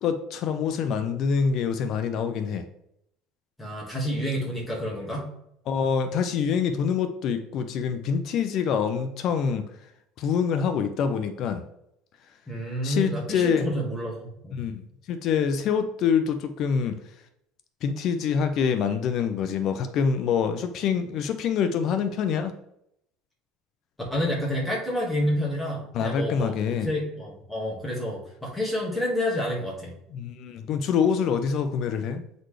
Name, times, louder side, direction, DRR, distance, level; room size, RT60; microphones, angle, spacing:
voice 1, 0.0-2.7 5.7-9.6 10.2-11.6 12.8-13.7 14.5-17.0 17.8-22.6 25.9-26.9 30.1-32.2, left 6 dB, 40° left, 8 dB, 0.4 m, -25 dB
voice 2, 3.6-5.3 12.5-14.6 24.1-29.9, equal, 5° left, -5 dB, 1.7 m, -29 dB
7.8 x 4.0 x 3.2 m, 0.75 s
cardioid pair, 175°, 0 cm